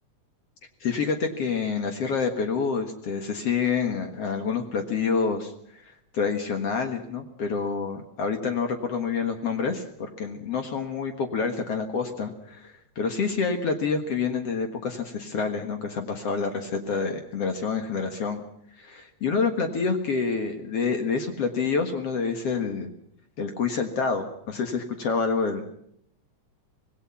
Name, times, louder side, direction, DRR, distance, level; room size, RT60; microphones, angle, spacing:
voice 1, 0.8-18.4 18.8-22.9 23.4-25.7, left 5 dB, 55° left, 6 dB, 2.4 m, -28 dB
25.5 x 18.5 x 5.8 m, 0.73 s
omnidirectional pair, 3.4 m